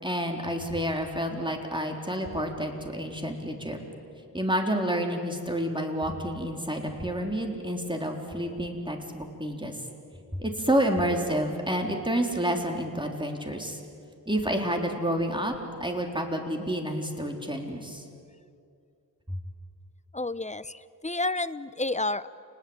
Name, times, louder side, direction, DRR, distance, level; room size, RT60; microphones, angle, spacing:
voice 1, 0.0-3.8 4.3-9.8 10.4-13.8 14.3-18.0 19.3-19.4, equal, 10° right, 2 dB, 3.9 m, -29 dB
voice 2, 20.1-22.3, left 2 dB, 15° left, 15 dB, 0.8 m, -30 dB
29.0 x 20.0 x 8.9 m, 2.5 s
wide cardioid pair, 40°, 40 cm